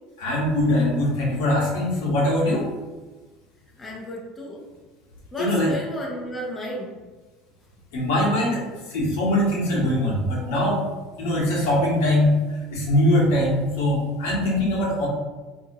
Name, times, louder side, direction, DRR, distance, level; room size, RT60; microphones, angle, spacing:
voice 1, 0.2-2.6 5.4-5.7 7.9-8.6 8.9-10.8 11.2-12.3 12.7-15.1, left 1 dB, 85° left, -4 dB, 1.2 m, -22 dB
voice 2, 3.8-4.6 5.3-6.9 9.8-10.0 14.3-14.4, left 1 dB, 15° left, -3 dB, 0.7 m, -33 dB
3.5 x 2.7 x 2.7 m, 1.3 s
supercardioid pair, 120°, 0 cm